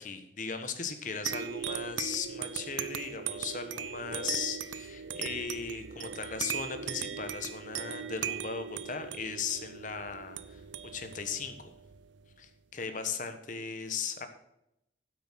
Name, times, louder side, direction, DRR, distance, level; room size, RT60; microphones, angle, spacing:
voice 1, 0.0-10.6 10.9-11.7 12.4-14.3, left 5 dB, 45° left, 7 dB, 1.2 m, -37 dB
sound 1, 1.3-12.3, right 8 dB, 85° right, 0.6 m, -39 dB
9.9 x 8.1 x 5.8 m, 0.83 s
head